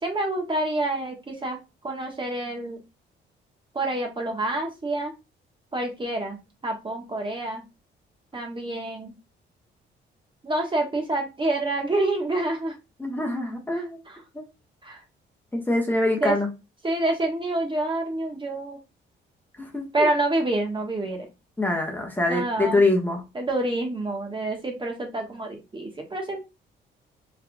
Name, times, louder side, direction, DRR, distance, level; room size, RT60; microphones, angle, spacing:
voice 1, 0.0-2.8 3.7-5.1 5.7-7.7 8.3-9.2 10.4-12.8 13.7-14.2 14.8-15.0 16.2-16.4 16.8-18.8 19.9-21.3 22.3-22.8 23.3-26.4, right 2 dB, 25° right, 2 dB, 1.4 m, -27 dB
voice 2, 13.0-14.0 14.3-14.4 15.5-16.5 19.6-20.1 21.6-23.2, left 2 dB, 10° left, 0 dB, 1.4 m, -24 dB
4.5 x 3.5 x 2.3 m, 0.25 s
cardioid pair, 90°, 20 cm